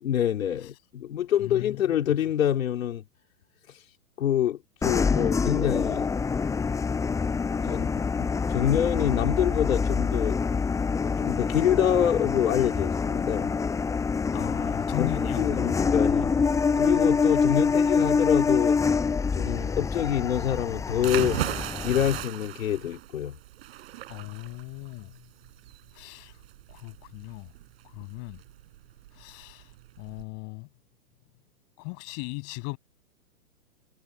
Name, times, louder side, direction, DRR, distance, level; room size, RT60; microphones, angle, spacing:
voice 1, 0.0-3.0 3.7-3.9 4.2-6.1 7.6-10.4 11.0-13.6 15.0-16.3 16.8-18.8 19.3-21.4 21.8-23.4, left 10 dB, 65° left, 2.7 m, -26 dB
voice 2, 1.4-2.0 14.3-15.4 19.5-19.8 24.1-25.2 25.9-26.4 26.7-27.5 27.9-28.4 29.1-29.7 30.0-30.7 31.8-32.8, left 40 dB or more, 25° left, 7.8 m, -37 dB
sound 1, 4.8-22.2, left 5 dB, 5° left, 5.8 m, -26 dB
sound 2, 20.9-30.2, right 14 dB, 45° right, 5.9 m, -37 dB
hypercardioid pair, 170°, 43 cm